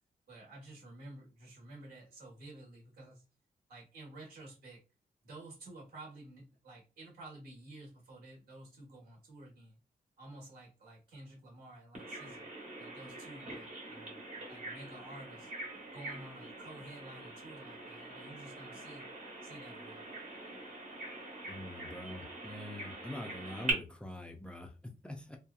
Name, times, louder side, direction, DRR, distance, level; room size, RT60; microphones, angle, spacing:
voice 1, 0.3-3.2 3.7-4.8 5.2-9.7 10.2-12.4 12.8-14.2 14.5-15.5 15.9-19.1 19.4-20.1, right 2 dB, 85° right, -5 dB, 1.2 m, -51 dB
Bird vocalization bird call bird song, 11.9-23.7, right 1 dB, 50° right, 1.1 m, -43 dB
voice 2, 21.5-25.4, left 1 dB, 5° left, 2 dB, 0.4 m, -44 dB
2.8 x 2.3 x 2.3 m, 0.31 s
wide cardioid pair, 145°, 16 cm